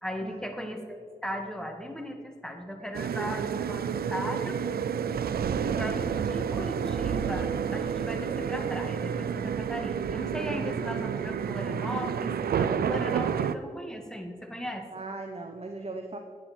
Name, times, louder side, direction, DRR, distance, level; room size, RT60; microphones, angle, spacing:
voice 1, 0.0-4.6 5.6-14.9, equal, 5° left, 4 dB, 1.7 m, -37 dB
sound 1, 2.9-13.6, right 7 dB, 85° right, 0.4 m, -30 dB
voice 2, 14.9-16.2, right 3 dB, 40° right, 4 dB, 1.0 m, -39 dB
10.0 x 9.5 x 4.3 m, 2.1 s
cardioid pair, 45°, 15 cm